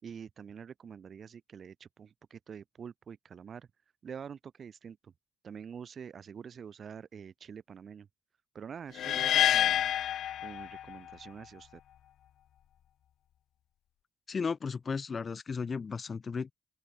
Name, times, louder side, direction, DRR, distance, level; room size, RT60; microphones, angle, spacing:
voice 1, 0.0-3.7 4.0-5.1 5.4-8.1 8.5-9.9 10.4-11.8, right 7 dB, 50° right, 4.7 m, -46 dB
sound 1, 9.0-11.1, left 11 dB, 70° left, 0.6 m, -28 dB
voice 2, 14.3-16.5, left 5 dB, 40° left, 1.6 m, -34 dB
open air
cardioid pair, 90°, 0 cm